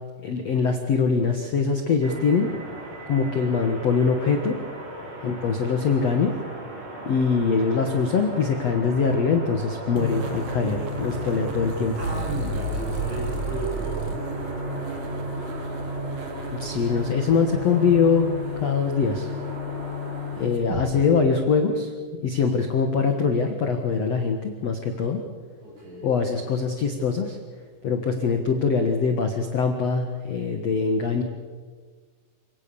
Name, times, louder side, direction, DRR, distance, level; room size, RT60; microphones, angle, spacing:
voice 1, 0.2-2.5 3.1-4.6 5.2-6.3 7.0-12.0 16.6-18.3 18.6-19.3 20.4-21.9 22.2-25.2 26.0-27.4 27.8-31.2, left 5 dB, 70° left, 5 dB, 1.5 m, -23 dB
sound 1, 2.0-20.5, right 1 dB, 25° right, 4.5 m, -37 dB
sound 2, 10.0-20.9, equal, 45° right, 3.2 m, -32 dB
voice 2, 12.0-14.2 25.6-26.1, right 2 dB, 70° right, -3 dB, 10.0 m, -34 dB
28.0 x 18.0 x 7.0 m, 1.5 s
omnidirectional pair, 5.4 m